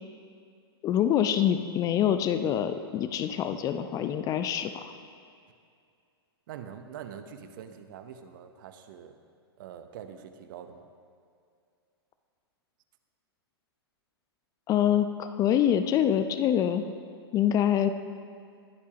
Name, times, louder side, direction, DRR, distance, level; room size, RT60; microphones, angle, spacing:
voice 1, 0.8-4.9 14.7-16.8 17.3-17.9, left 10 dB, 25° left, 10 dB, 0.5 m, -25 dB
voice 2, 6.5-9.2 9.6-10.9, right 8 dB, 50° right, 8 dB, 0.9 m, -44 dB
20.5 x 8.3 x 2.9 m, 2.3 s
figure-of-eight pair, 110°, 14 cm